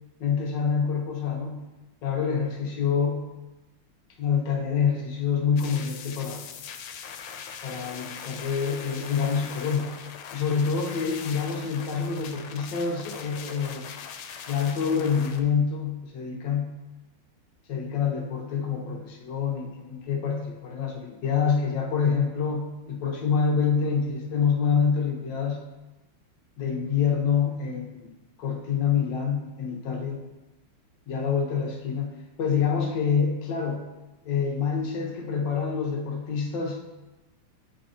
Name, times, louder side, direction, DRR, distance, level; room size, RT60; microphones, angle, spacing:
voice 1, 0.2-1.6 2.0-3.3 4.2-6.4 7.6-10.0 10.3-13.9 14.5-16.7 17.7-25.6 26.6-28.1 28.4-30.2 31.1-33.8 34.2-36.8, left 6 dB, 65° left, 1 dB, 1.4 m, -26 dB
sound 1, 5.6-15.4, left 7 dB, 90° left, 1.5 m, -41 dB
8.9 x 4.2 x 2.6 m, 1.1 s
omnidirectional pair, 2.3 m